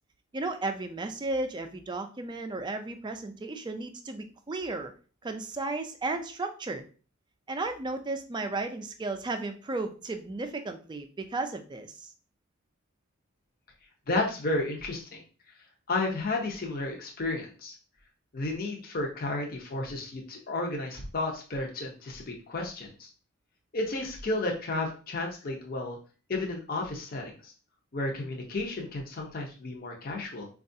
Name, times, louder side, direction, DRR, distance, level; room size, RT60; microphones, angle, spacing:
voice 1, 0.3-4.9 5.2-6.8 7.5-12.1, right 2 dB, 20° right, 7 dB, 0.3 m, -34 dB
voice 2, 14.1-15.2 15.9-17.7 18.3-23.1 23.7-26.0 26.3-27.5 27.9-30.5, left 2 dB, 45° left, 0 dB, 0.6 m, -32 dB
4.5 x 2.3 x 2.6 m, 0.38 s
head